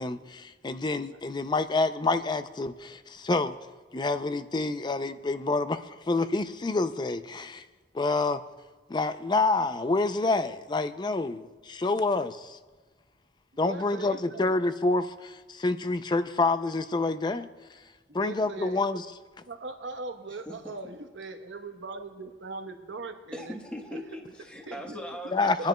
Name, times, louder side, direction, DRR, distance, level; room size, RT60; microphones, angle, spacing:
voice 1, 0.0-3.6 3.9-7.6 7.9-8.4 8.9-12.6 13.6-17.5 18.1-19.1 25.3-25.7, left 3 dB, 25° left, 0.4 m, -28 dB
voice 2, 13.5-14.5 18.1-18.9 19.4-23.5 24.7-25.0 25.4-25.7, right 3 dB, 90° right, 1.1 m, -40 dB
voice 3, 20.4-20.8 23.3-25.7, equal, 5° left, 1.2 m, -40 dB
28.0 x 10.5 x 2.3 m
head